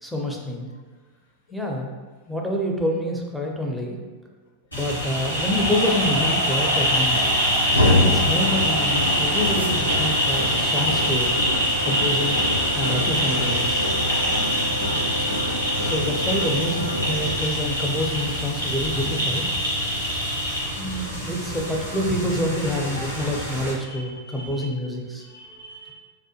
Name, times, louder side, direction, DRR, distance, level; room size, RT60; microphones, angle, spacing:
voice 1, 0.0-0.7 1.5-1.9 2.3-4.0 4.7-7.2 7.8-11.4 11.8-12.4 12.7-13.9 15.8-19.5 20.7-25.3, left 1 dB, ahead, -1 dB, 0.4 m, -27 dB
sound 1, 4.7-23.7, equal, 90° left, 0.9 m, -24 dB
sound 2, 7.1-17.3, left 1 dB, 85° right, 0.4 m, -27 dB
voice 2, 14.1-14.7 23.9-24.7 25.3-25.9, right 1 dB, 55° left, 1 dB, 0.5 m, -44 dB
2.7 x 2.1 x 2.8 m, 1.4 s
figure-of-eight pair, 90°, 0 cm